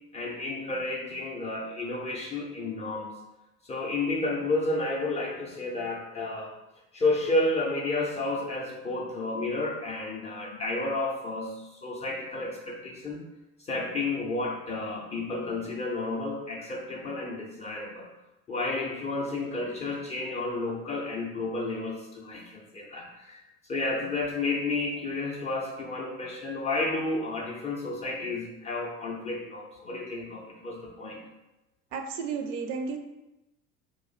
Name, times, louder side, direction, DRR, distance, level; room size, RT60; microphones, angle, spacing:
voice 1, 0.1-3.1 3.6-6.5 6.9-13.2 13.6-18.1 18.5-23.4 23.7-31.2, left 2 dB, 20° left, -3 dB, 0.4 m, -31 dB
voice 2, 31.9-33.0, right 5 dB, 60° right, 6 dB, 0.5 m, -32 dB
2.4 x 2.1 x 3.9 m, 0.96 s
figure-of-eight pair, 65°, 42 cm